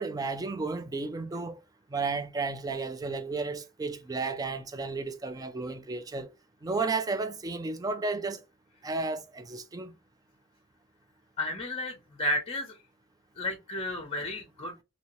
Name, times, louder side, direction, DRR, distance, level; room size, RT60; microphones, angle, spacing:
voice 1, 0.0-1.6 1.9-6.3 6.6-8.4 8.8-9.9, right 3 dB, 15° right, 0.3 m, -33 dB
voice 2, 11.4-12.7 13.4-14.8, left 1 dB, 25° left, 0.6 m, -32 dB
2.8 x 2.8 x 2.9 m
head